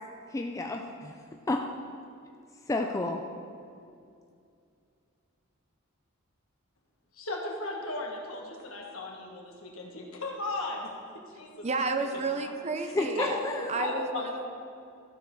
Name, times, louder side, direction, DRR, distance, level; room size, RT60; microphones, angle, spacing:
voice 1, 0.3-1.1 1.5-1.6 2.7-3.2 12.9-13.7, left 2 dB, 15° left, 2 dB, 0.4 m, -30 dB
voice 2, 7.1-11.7 12.4-12.5 12.8-14.5, left 2 dB, 70° left, -1 dB, 1.6 m, -36 dB
voice 3, 11.6-13.4 13.7-14.5, right 3 dB, 30° right, 6 dB, 0.6 m, -31 dB
13.5 x 5.1 x 5.4 m, 2.4 s
head